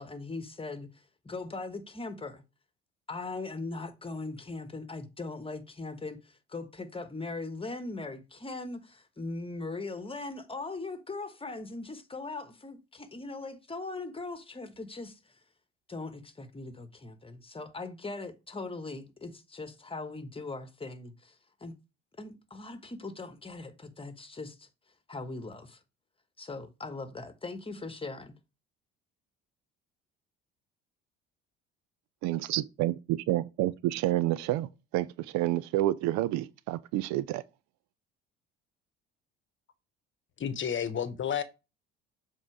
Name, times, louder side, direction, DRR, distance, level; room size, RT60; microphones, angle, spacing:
voice 1, 0.0-2.4 3.1-15.2 15.9-21.3 21.6-21.7 22.2-24.7 25.1-25.8 26.4-28.3, left 3 dB, 15° left, 1.4 m, -40 dB
voice 2, 32.2-37.4, right 15 dB, 60° right, 0.6 m, -29 dB
voice 3, 40.4-41.4, left 8 dB, 40° left, 1.1 m, -31 dB
7.3 x 3.9 x 4.6 m
hypercardioid pair, 60°, 31 cm